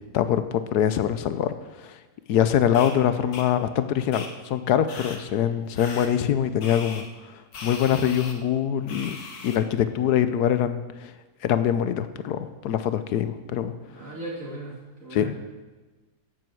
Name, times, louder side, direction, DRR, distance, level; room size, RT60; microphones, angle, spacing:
voice 1, 0.1-2.0 2.3-7.1 7.6-9.2 9.4-11.1 11.4-13.7 15.1-15.3, left 9 dB, 90° left, 11 dB, 1.3 m, -24 dB
voice 2, 2.6-3.2 13.9-15.4, right 2 dB, 55° right, -4 dB, 3.0 m, -38 dB
sound 1, 2.7-2.9 3.3-3.5 4.1-4.3 4.9-5.2 5.8-6.1 6.6-7.0 7.5-8.3 8.9-9.6, left 4 dB, 75° left, 1.8 m, -38 dB
11.0 x 7.7 x 7.7 m, 1.2 s
omnidirectional pair, 1.7 m